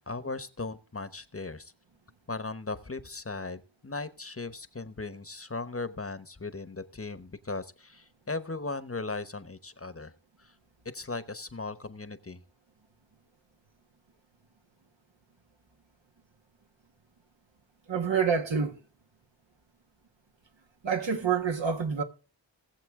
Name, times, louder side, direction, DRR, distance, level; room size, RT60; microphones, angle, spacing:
voice 1, 0.1-1.7 2.3-10.1 10.4-10.5 10.9-12.4, left 3 dB, 30° left, 1.0 m, -37 dB
voice 2, 17.9-18.8 20.8-22.0, right 6 dB, 75° right, 1.7 m, -27 dB
19.5 x 7.3 x 3.7 m
wide cardioid pair, 50°, 45 cm